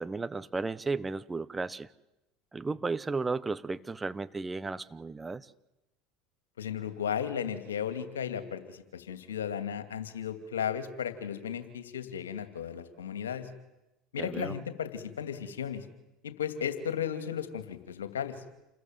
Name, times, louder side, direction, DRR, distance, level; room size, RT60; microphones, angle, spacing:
voice 1, 0.0-1.9 2.5-5.5 14.2-14.6, right 3 dB, 20° right, 15 dB, 1.1 m, -34 dB
voice 2, 6.6-13.5 14.1-15.8 16.2-18.3, left 8 dB, 80° left, 10 dB, 2.6 m, -35 dB
28.5 x 21.0 x 9.3 m, 0.93 s
hypercardioid pair, 75°, 0 cm